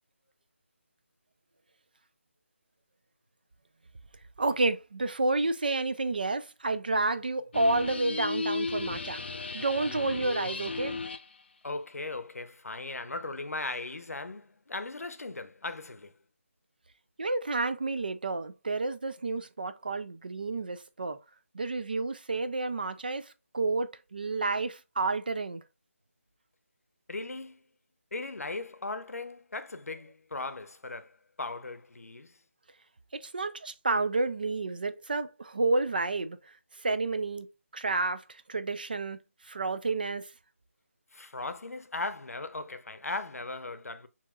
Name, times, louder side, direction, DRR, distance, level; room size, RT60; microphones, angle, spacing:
voice 1, 4.4-9.2 9.5-11.0 17.2-21.2 21.5-25.6 33.1-37.5 37.7-39.2 39.4-40.3, right 3 dB, 40° right, 0.3 m, -30 dB
sound 1, 7.5-11.3, left 4 dB, 45° left, 0.3 m, -35 dB
voice 2, 11.6-16.1 27.1-27.6 28.1-32.4 41.1-44.1, left 3 dB, 85° left, 0.7 m, -38 dB
6.9 x 2.9 x 2.3 m
figure-of-eight pair, 170°, 8 cm